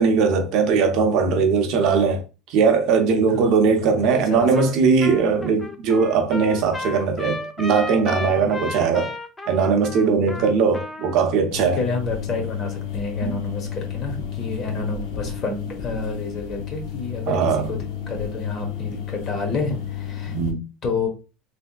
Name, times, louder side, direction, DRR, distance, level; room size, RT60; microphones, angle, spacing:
voice 1, 0.0-2.2 2.5-9.1 9.5-11.8 13.2-13.4 17.3-17.7 20.3-20.6, right 5 dB, 55° right, 0.7 m, -20 dB
voice 2, 4.0-4.5 10.3-10.5 11.6-20.4 20.8-21.1, left 3 dB, 40° left, 1.0 m, -29 dB
Trumpet, 4.5-4.7 5.0-11.2, left 2 dB, 10° left, 0.4 m, -34 dB
sound 1, 11.5-20.5, left 9 dB, 70° left, 0.6 m, -32 dB
3.3 x 2.7 x 2.2 m
supercardioid pair, 135°, 0 cm